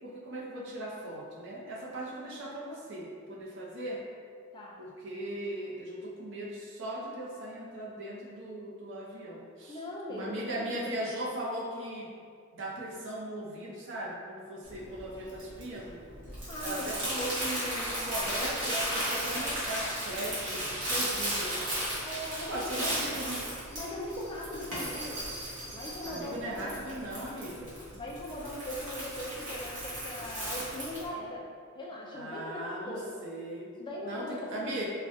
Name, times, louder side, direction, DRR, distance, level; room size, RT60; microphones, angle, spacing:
voice 1, 0.0-4.0 4.8-9.8 10.1-12.1 12.5-16.0 16.6-21.6 22.5-23.4 26.1-27.8 32.1-33.7 34.0-34.8, right 1 dB, 55° right, -3 dB, 0.6 m, -38 dB
voice 2, 9.7-11.0 16.5-17.2 22.0-23.2 23.7-25.3 25.7-26.9 27.9-31.5 31.7-33.2 33.8-34.8, left 1 dB, 20° left, -3 dB, 0.3 m, -40 dB
Crumpling crinkling, 14.6-31.1, right 1 dB, 90° right, 1.3 m, -35 dB
4.9 x 2.2 x 2.6 m, 2.1 s
head